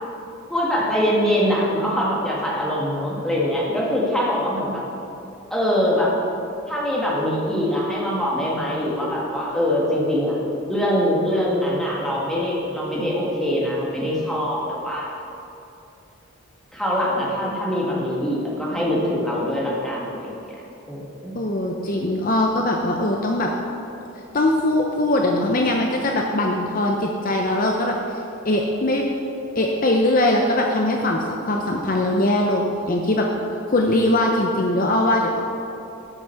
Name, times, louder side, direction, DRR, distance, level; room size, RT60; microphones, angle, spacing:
voice 1, 0.5-4.8 5.5-6.1 6.7-10.4 10.7-15.1 16.7-20.3 20.9-21.3, equal, ahead, -5 dB, 1.7 m, -23 dB
voice 2, 21.3-23.5 24.3-28.0 28.4-29.1 29.5-33.3 33.7-35.4, left 1 dB, 40° left, 1 dB, 0.7 m, -21 dB
12.5 x 6.1 x 5.6 m, 2.8 s
head